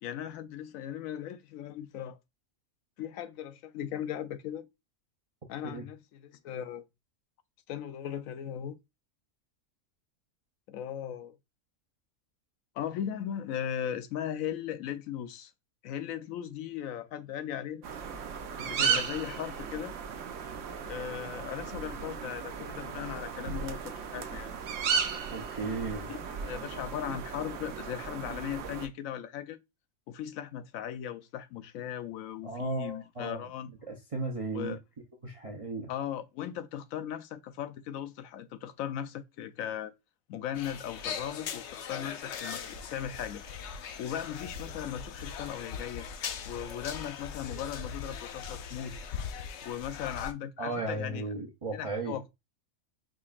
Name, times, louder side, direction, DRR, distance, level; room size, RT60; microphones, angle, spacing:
voice 1, 0.0-2.2 3.0-4.7 5.5-6.8 7.7-8.8 10.7-11.4 12.8-15.5 15.8-17.9 18.6-19.9 20.9-24.5 26.1-29.6 30.1-33.7 34.5-34.8 35.9-39.9 40.3-43.4 44.0-46.1 46.4-48.9 49.6-51.3 51.7-52.3, left 10 dB, 90° left, 1.0 m, -38 dB
sound 1, 17.8-28.9, right 6 dB, 70° right, 1.0 m, -35 dB
voice 2, 25.3-26.1 32.4-33.4 33.9-34.7 35.2-35.9 50.6-52.2, right 3 dB, 35° right, 0.6 m, -35 dB
sound 2, 40.5-50.3, left 7 dB, 65° left, 0.8 m, -40 dB
5.0 x 2.9 x 2.4 m
omnidirectional pair, 1.4 m